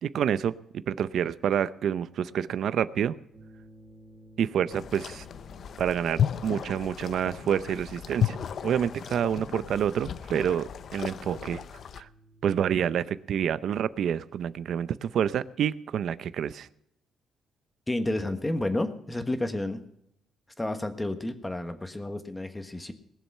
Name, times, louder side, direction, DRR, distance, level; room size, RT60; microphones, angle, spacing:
voice 1, 0.0-3.2 4.4-5.2 5.8-11.6 12.0-12.1 12.4-16.7, right 9 dB, 65° right, 16 dB, 0.6 m, -28 dB
sound 1, 3.3-13.9, right 1 dB, 35° right, 3.7 m, -55 dB
sound 2, 4.7-12.0, left 9 dB, 50° left, 0.6 m, -34 dB
voice 2, 17.9-19.8 20.6-22.9, left 1 dB, 10° left, 8 dB, 1.3 m, -30 dB
20.0 x 7.3 x 5.5 m, 0.77 s
cardioid pair, 135°, 0 cm